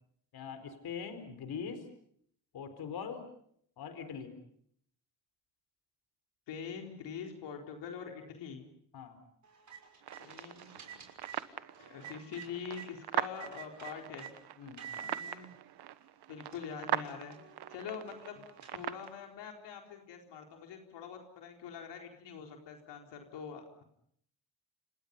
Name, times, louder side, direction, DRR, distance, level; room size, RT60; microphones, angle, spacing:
voice 1, 0.3-1.8 2.5-3.2 3.8-4.3 8.9-9.2 14.6-14.8, left 6 dB, 65° left, 9 dB, 4.4 m, -42 dB
voice 2, 6.5-8.6 10.2-11.0 11.8-14.3 14.9-15.5 16.3-17.4 17.7-18.4 18.7-23.8, left 7 dB, 90° left, 3 dB, 4.3 m, -44 dB
sound 1, 9.4-12.9 13.3-14.3 14.8-15.4 16.0-16.1 16.4-19.3, right 7 dB, 45° right, 6.2 m, -50 dB
sound 2, 10.0-19.1, right 12 dB, 70° right, 1.4 m, -41 dB
29.5 x 26.5 x 5.4 m, 0.66 s
cardioid pair, 100°, 41 cm